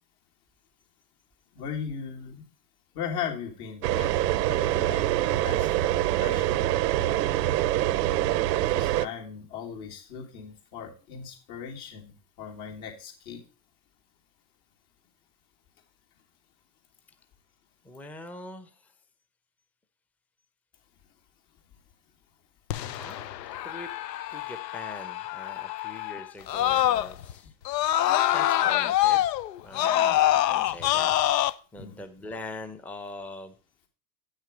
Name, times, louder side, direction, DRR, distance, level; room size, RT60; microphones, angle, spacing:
voice 1, 1.5-2.4 2.9-4.1 4.4-6.6 8.7-13.4 31.8-32.0, left 7 dB, 60° left, 0 dB, 2.9 m, -38 dB
sound 1, 3.8-9.1, right 14 dB, 80° right, 0.7 m, -25 dB
voice 2, 17.8-18.9 22.8-23.3 23.6-23.9 24.3-27.5 28.3-29.3 29.6-31.1 31.7-33.5, left 2 dB, 5° left, 8 dB, 0.6 m, -42 dB
Screaming, 22.7-27.3 27.7-31.5, left 13 dB, 85° left, 0.7 m, -25 dB
8.6 x 6.4 x 5.0 m, 0.37 s
hypercardioid pair, 110°, 49 cm